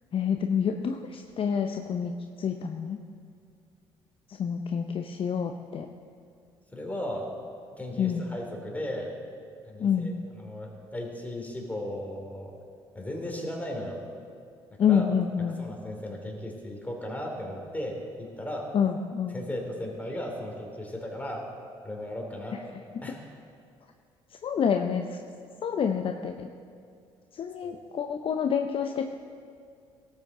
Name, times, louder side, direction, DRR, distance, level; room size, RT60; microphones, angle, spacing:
voice 1, 0.1-3.0 4.3-5.9 8.0-8.2 9.8-10.1 14.8-15.6 18.7-19.4 22.9-23.0 24.4-25.2 25.6-26.5 27.3-29.1, left 7 dB, 45° left, 5 dB, 0.6 m, -28 dB
voice 2, 6.7-7.3 7.8-9.1 9.7-12.6 12.9-14.0 14.7-15.1 15.6-18.7 19.3-21.5 21.8-22.8 23.0-23.2 27.6-27.8, left 1 dB, 10° left, 0 dB, 3.1 m, -36 dB
18.0 x 8.2 x 3.8 m, 2.3 s
hypercardioid pair, 55°, 13 cm